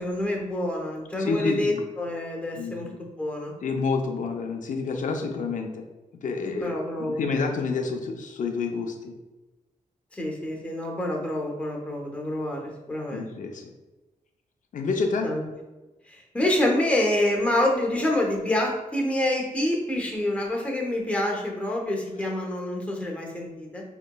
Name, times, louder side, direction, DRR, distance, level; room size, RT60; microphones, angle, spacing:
voice 1, 0.0-3.5 6.6-7.2 10.1-13.3 15.2-15.4 16.1-23.8, left 1 dB, 10° left, -1 dB, 0.7 m, -27 dB
voice 2, 1.2-1.8 2.6-3.0 3.6-5.8 6.1-6.7 7.0-9.1 13.1-13.7 14.7-15.3, left 4 dB, 70° left, 4 dB, 0.5 m, -28 dB
5.0 x 2.9 x 2.2 m, 1.1 s
wide cardioid pair, 140°, 14 cm